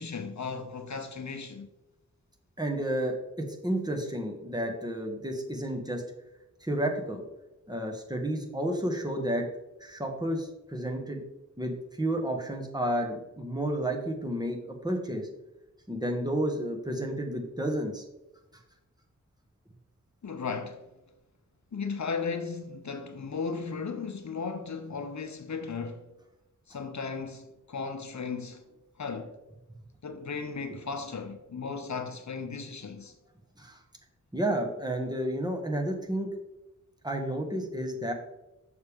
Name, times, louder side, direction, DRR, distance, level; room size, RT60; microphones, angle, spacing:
voice 1, 0.0-1.7 20.2-20.8 21.7-26.1 26.7-28.6 29.0-29.4 30.0-33.1, left 5 dB, 60° left, 0.8 m, -36 dB
voice 2, 2.6-6.0 6.6-7.2 7.7-9.5 9.8-11.2 11.6-15.3 15.9-18.0 18.5-18.6 33.6-33.8 34.3-36.3 37.0-38.1, right 1 dB, 10° right, 1.5 m, -31 dB
6.7 x 6.6 x 3.5 m
wide cardioid pair, 65°, 32 cm